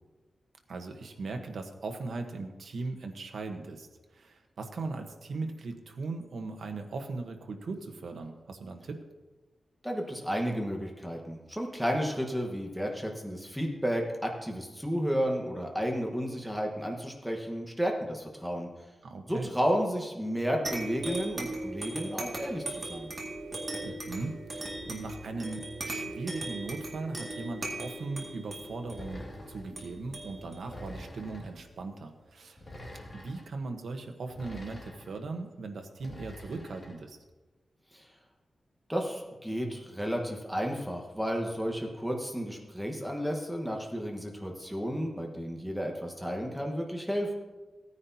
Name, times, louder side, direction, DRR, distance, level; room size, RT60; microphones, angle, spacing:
voice 1, 0.7-9.0 19.0-19.5 23.8-32.6 33.1-37.2, right 3 dB, 80° right, 5 dB, 1.1 m, -39 dB
voice 2, 9.8-18.7 19.3-23.1 37.9-38.0 38.9-47.3, equal, ahead, 1 dB, 1.3 m, -32 dB
sound 1, 20.6-31.7, right 2 dB, 30° right, 2.0 m, -39 dB
sound 2, 28.9-29.7 30.6-31.6 32.6-33.5 34.3-35.2 36.0-37.0, left 1 dB, 35° left, 2.4 m, -45 dB
16.5 x 9.6 x 2.8 m, 1.2 s
wide cardioid pair, 140°, 0 cm